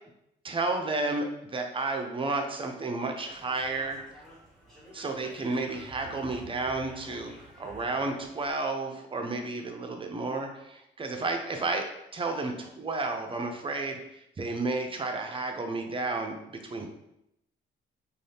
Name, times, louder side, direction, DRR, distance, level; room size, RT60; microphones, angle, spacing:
voice 1, 0.4-4.0 4.9-7.3 7.6-11.9 12.1-14.0 14.4-16.9, right 3 dB, 25° right, 4 dB, 0.5 m, -32 dB
sound 1, 3.2-8.5, equal, ahead, 1.0 m, -50 dB
2.6 x 2.4 x 3.3 m, 0.82 s
cardioid pair, 90°, 20 cm